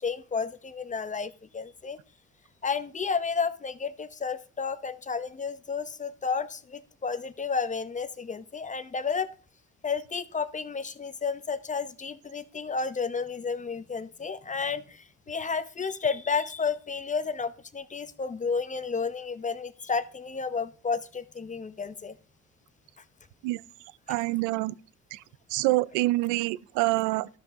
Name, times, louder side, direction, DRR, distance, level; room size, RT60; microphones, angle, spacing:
voice 1, 0.0-2.0 2.6-9.3 9.8-22.2, left 5 dB, 25° left, 0.8 m, -32 dB
voice 2, 24.1-24.7 25.1-25.2 25.5-27.3, right 20 dB, 90° right, 0.5 m, -26 dB
12.5 x 5.6 x 3.7 m
supercardioid pair, 75°, 30 cm